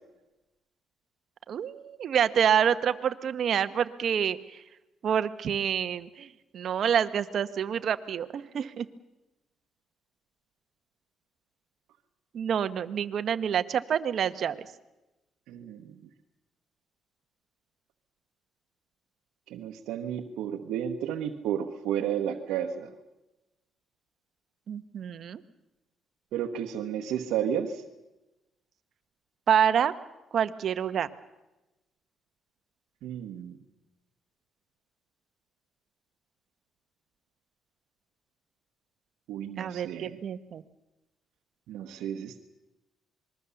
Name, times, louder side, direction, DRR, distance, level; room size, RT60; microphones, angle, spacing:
voice 1, 1.5-4.4 5.0-8.9 12.3-14.6 24.7-25.4 29.5-29.9 30.3-31.1 39.6-40.6, right 8 dB, 60° right, 11 dB, 1.1 m, -27 dB
voice 2, 15.5-16.0 19.5-22.9 26.3-27.8 33.0-33.6 39.3-40.2 41.7-42.4, right 9 dB, 90° right, 2 dB, 1.2 m, -32 dB
27.0 x 21.0 x 7.1 m, 1.0 s
cardioid pair, 90°, 0 cm